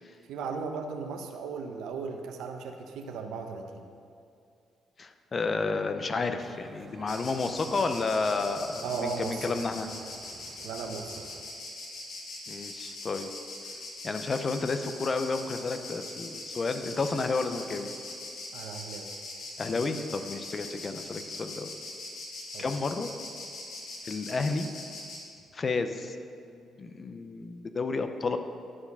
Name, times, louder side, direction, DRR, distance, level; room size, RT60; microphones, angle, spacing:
voice 1, 0.3-3.8 8.8-9.5 10.6-11.2 18.5-19.1 22.5-22.8, right 5 dB, 85° right, 5 dB, 0.8 m, -36 dB
voice 2, 5.0-9.9 12.5-13.3 14.0-17.9 19.6-21.7 22.6-23.1 24.0-24.7 25.5-26.2 26.8-28.4, left 3 dB, 35° left, 8 dB, 0.6 m, -31 dB
sound 1, 6.4-11.5, right 4 dB, 45° right, 0.6 m, -51 dB
Insect, 7.1-25.2, left 2 dB, 70° left, 1.8 m, -41 dB
11.0 x 4.8 x 5.4 m, 2.4 s
cardioid pair, 90°, 0 cm